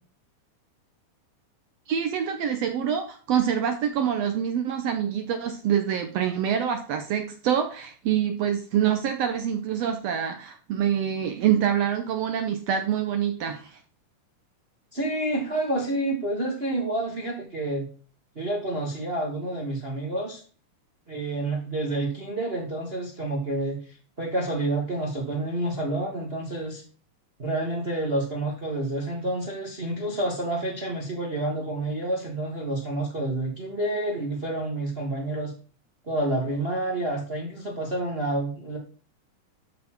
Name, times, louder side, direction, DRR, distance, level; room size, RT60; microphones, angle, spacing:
voice 1, 1.9-13.8, right 9 dB, 75° right, 6 dB, 1.5 m, -26 dB
voice 2, 14.9-17.9 18.3-20.4 21.1-23.8 24.2-26.8 27.4-35.5 36.1-38.8, right 1 dB, 40° right, -1 dB, 0.8 m, -29 dB
12.5 x 4.2 x 4.5 m, 0.41 s
omnidirectional pair, 3.7 m